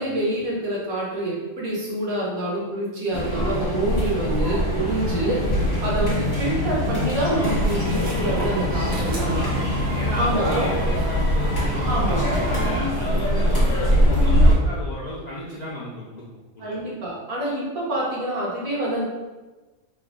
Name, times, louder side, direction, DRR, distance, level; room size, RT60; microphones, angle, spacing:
voice 1, 0.0-5.4 5.8-9.4 10.2-10.7 11.8-12.2 16.6-19.1, right 1 dB, 85° right, -5 dB, 1.5 m, -26 dB
sound 1, 3.1-14.6, equal, 30° left, 1.2 m, -23 dB
Crow, 4.4-11.1, right 1 dB, 20° right, 0.8 m, -33 dB
sound 2, 7.3-12.8, equal, 50° right, 1.1 m, -29 dB
voice 2, 9.3-16.2 16.5-16.8, left 1 dB, 55° left, -8 dB, 0.4 m, -34 dB
3.1 x 2.3 x 3.6 m, 1.2 s
omnidirectional pair, 1.4 m